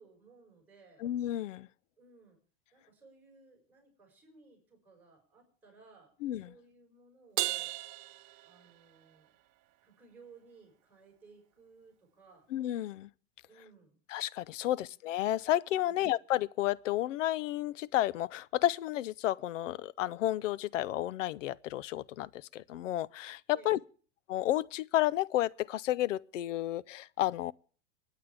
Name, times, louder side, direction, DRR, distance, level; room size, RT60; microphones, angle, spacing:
voice 1, 0.0-1.0 2.0-2.4 2.7-7.7 8.4-9.3 9.8-12.5 13.5-14.0 14.6-14.9 15.8-16.1 23.5-23.8, right 4 dB, 5° right, 6.2 m, -59 dB
voice 2, 1.0-1.7 6.2-6.5 12.5-13.1 14.1-23.8 24.3-27.5, left 14 dB, 75° left, 0.6 m, -31 dB
Crash cymbal, 7.4-9.1, right 19 dB, 35° right, 0.7 m, -36 dB
28.0 x 9.5 x 3.5 m
supercardioid pair, 160°, 37 cm